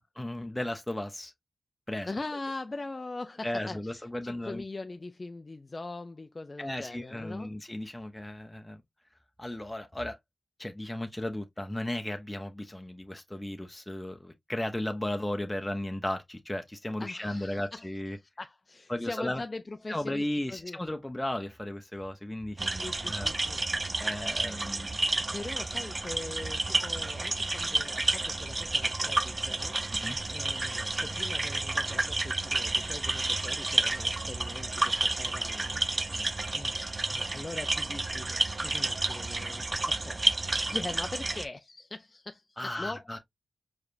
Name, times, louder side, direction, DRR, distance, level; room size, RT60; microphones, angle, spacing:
voice 1, 0.2-1.3 1.9-2.1 3.4-4.6 6.6-8.8 9.4-10.2 10.6-18.2 18.9-19.4 19.9-23.3 24.0-25.0 29.9-30.2 34.9-35.3 36.1-36.3 37.3-37.4 42.6-43.2, left 1 dB, 15° left, 0.8 m, -35 dB
voice 2, 2.1-7.5 17.0-17.9 18.1-20.8 22.8-23.6 25.3-36.8 37.1-43.1, left 2 dB, 35° left, 0.4 m, -42 dB
sound 1, 22.6-41.5, right 2 dB, 35° right, 0.6 m, -30 dB
4.9 x 3.3 x 2.6 m
cardioid pair, 55°, 0 cm